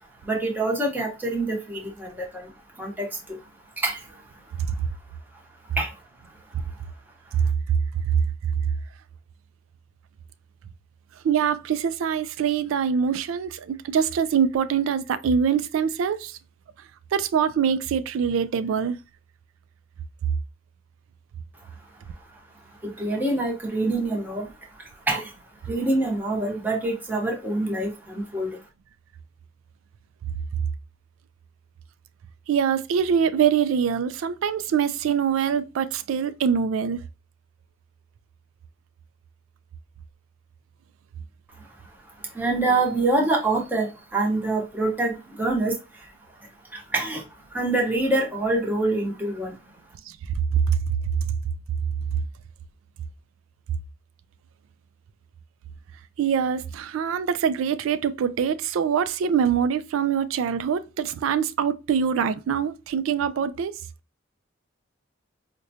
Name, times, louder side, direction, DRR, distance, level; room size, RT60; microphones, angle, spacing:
voice 1, 0.2-2.5 2.8-3.4 3.8-4.0 5.8-5.9 23.0-24.5 25.1-25.3 25.7-28.5 42.3-45.7 46.7-47.2 47.5-49.5, right 2 dB, 10° right, 0.8 m, -25 dB
voice 2, 11.2-16.4 17.1-19.0 32.5-37.0 50.1-50.2 50.7-50.8 56.2-63.8, right 7 dB, 90° right, 0.3 m, -24 dB
4.9 x 2.2 x 2.7 m
head